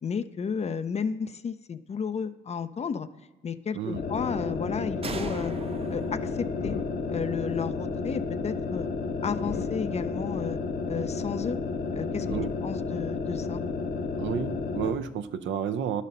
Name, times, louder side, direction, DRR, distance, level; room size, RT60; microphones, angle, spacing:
voice 1, 0.0-3.1 3.4-5.5 5.9-6.8 7.1-8.9 9.2-10.6 10.9-11.6 11.9-12.3 12.6-13.6, left 6 dB, 35° left, 12 dB, 0.5 m, -32 dB
sound 1, 3.9-15.0, left 4 dB, 50° left, 0.9 m, -31 dB
sound 2, 5.0-8.6, right 4 dB, 30° right, 0.6 m, -42 dB
voice 2, 14.2-16.0, right 8 dB, 70° right, 10 dB, 0.6 m, -31 dB
10.5 x 4.1 x 5.3 m, 1.1 s
cardioid pair, 90°, 20 cm